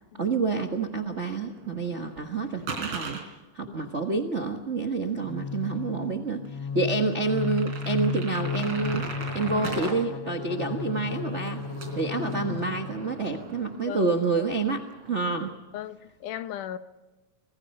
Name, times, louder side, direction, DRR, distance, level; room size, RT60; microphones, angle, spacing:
voice 1, 0.2-3.2 3.5-9.1 9.3-11.6 11.9-15.5, right 4 dB, 80° right, 0.6 m, -28 dB
sound 1, 1.2-3.2 4.9-5.0 5.4-5.5 6.1-6.2 6.5-6.6 7.0-9.9 10.3-14.1 14.4-15.5, right 3 dB, 40° right, 4.3 m, -39 dB
sound 2, 5.2-13.2, left 4 dB, 45° left, 1.9 m, -34 dB
voice 2, 12.2-12.8 13.9-14.5 15.7-16.8, left 11 dB, 75° left, 2.3 m, -37 dB
25.5 x 21.5 x 5.5 m
omnidirectional pair, 3.8 m